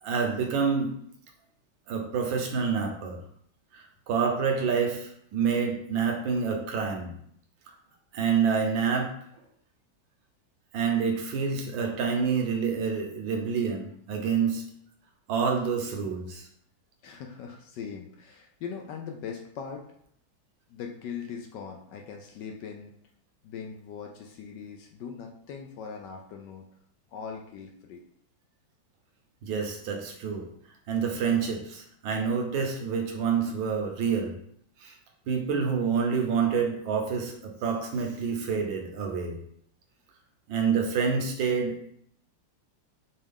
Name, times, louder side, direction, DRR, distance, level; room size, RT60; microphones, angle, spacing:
voice 1, 0.0-0.9 1.9-3.2 3.7-7.1 8.1-9.1 10.7-14.6 15.3-16.4 29.4-30.5 30.9-34.4 34.8-34.9 35.3-39.4 40.5-41.9, right 6 dB, 75° right, 2 dB, 1.5 m, -27 dB
voice 2, 17.0-19.8 20.7-22.9 23.4-26.6 27.1-28.0, left 6 dB, 75° left, 2 dB, 1.1 m, -40 dB
5.3 x 2.3 x 3.4 m, 0.66 s
omnidirectional pair, 2.2 m